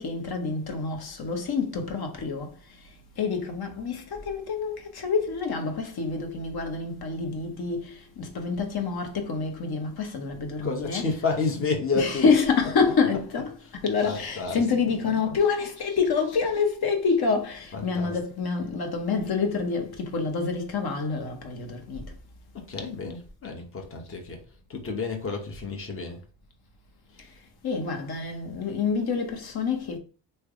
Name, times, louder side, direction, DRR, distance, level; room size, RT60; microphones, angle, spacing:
voice 1, 0.0-11.0 11.9-22.1 27.2-27.3 27.6-30.0, left 5 dB, 55° left, 1.0 m, -27 dB
voice 2, 10.6-12.3 13.3-13.7 14.0-14.7 15.1-15.4 17.7-18.2 22.5-24.4 24.7-26.2 27.1-27.3, left 4 dB, 30° left, 1.0 m, -31 dB
3.2 x 2.2 x 3.6 m
cardioid pair, 80°, 45 cm